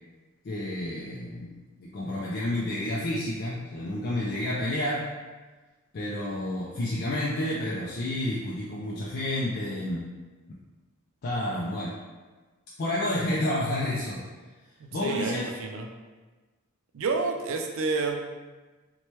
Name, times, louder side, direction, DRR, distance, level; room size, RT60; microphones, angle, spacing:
voice 1, 0.4-5.1 5.9-10.1 11.2-12.0 12.8-14.2 14.9-15.5, left 1 dB, 45° left, -5 dB, 0.3 m, -30 dB
voice 2, 14.8-15.9 16.9-18.2, right 4 dB, 65° right, 4 dB, 0.3 m, -29 dB
2.9 x 2.1 x 3.0 m, 1.3 s
head